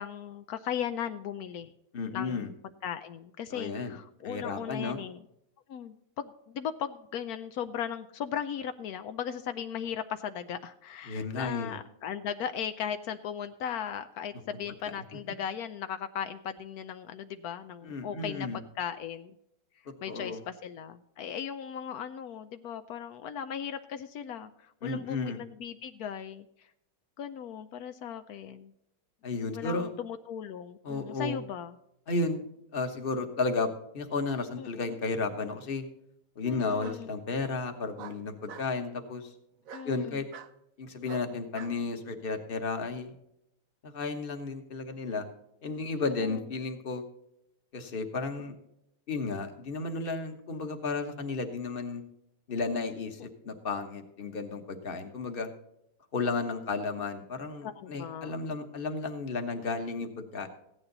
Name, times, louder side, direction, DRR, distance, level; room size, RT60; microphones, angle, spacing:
voice 1, 0.0-1.7 2.1-2.4 2.8-5.2 5.7-19.3 20.0-26.7 27.2-28.7 29.5-31.8 34.6-34.9 36.5-37.2 39.7-40.2 46.0-46.4 57.6-58.4, left 8 dB, 85° left, 9 dB, 0.8 m, -37 dB
voice 2, 1.9-2.5 3.5-3.9 4.2-5.0 11.1-11.8 14.9-15.0 17.8-18.6 20.1-20.4 24.8-25.4 29.2-29.9 30.8-31.4 32.1-32.4 32.7-33.7 33.9-35.8 36.4-39.3 39.8-40.3 40.8-43.1 43.8-45.3 45.6-47.0 47.7-48.5 49.1-52.0 52.5-55.5 56.1-60.5, left 3 dB, 35° left, 6 dB, 1.1 m, -33 dB
Bark, 34.6-35.3 36.8-37.0 38.0-38.7 39.6-39.9 40.3-40.5 41.1-41.8, right 9 dB, 80° right, 0.7 m, -46 dB
15.5 x 9.8 x 4.0 m, 0.79 s
omnidirectional pair, 2.3 m